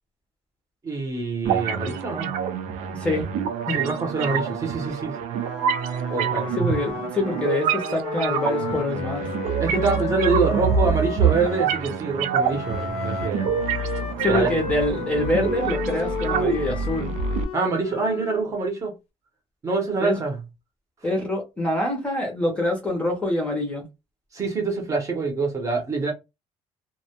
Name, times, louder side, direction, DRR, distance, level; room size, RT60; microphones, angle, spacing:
voice 1, 0.8-2.3 3.7-5.2 6.1-6.5 9.6-13.6 14.3-14.5 17.5-18.9 19.6-20.4 24.3-26.1, right 3 dB, 25° right, 0.7 m, -25 dB
sound 1, 1.4-17.4, right 7 dB, 90° right, 0.4 m, -26 dB
voice 2, 2.9-3.3 3.7-3.8 6.6-9.3 14.2-17.1 20.0-20.2 21.0-23.8, left 1 dB, 10° left, 0.6 m, -25 dB
Wind instrument woodwind instrument, 5.3-11.7 12.4-18.5, left 7 dB, 65° left, 0.6 m, -34 dB
2.1 x 2.0 x 2.8 m
cardioid pair, 180°, 12 cm